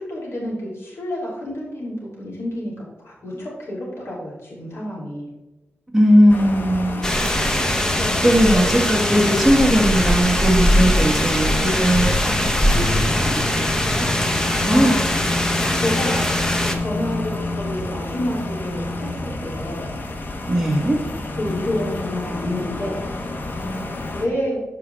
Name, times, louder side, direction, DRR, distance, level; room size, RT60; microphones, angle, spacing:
voice 1, 0.0-5.3 7.3-7.5 7.8-8.6 9.1-9.3 14.7-15.0 15.4-16.2 16.6-19.9 21.4-23.0 24.1-24.6, left 1 dB, 75° left, -4 dB, 3.2 m, -29 dB
voice 2, 5.9-7.2 8.2-14.1 14.6-15.0 20.4-21.0, equal, 5° right, -3 dB, 1.9 m, -19 dB
sound 1, 6.3-24.3, left 2 dB, 50° left, 1.0 m, -29 dB
sound 2, 7.0-16.8, left 1 dB, 15° left, 0.9 m, -21 dB
13.5 x 4.9 x 3.4 m, 1.1 s
wide cardioid pair, 125°, 4 cm